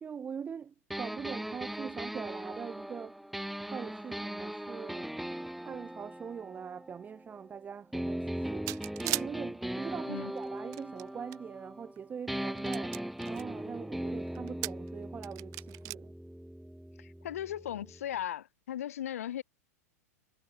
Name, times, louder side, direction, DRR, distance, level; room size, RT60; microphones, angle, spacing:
voice 1, 0.0-3.2 3.7-5.1 5.6-8.7 9.0-13.0 13.3-16.1, right 7 dB, 20° right, 1.3 m, -42 dB
sound 1, 0.9-7.4 7.9-12.0 12.3-18.0, right 1 dB, ahead, 0.5 m, -39 dB
sound 2, 8.7-9.3 10.4-11.4 12.0-12.1 12.6-13.4 14.3-14.9 15.2-15.9, right 24 dB, 40° right, 0.9 m, -36 dB
voice 2, 17.0-19.4, left 11 dB, 60° left, 0.6 m, -37 dB
figure-of-eight pair, 95°, 9 cm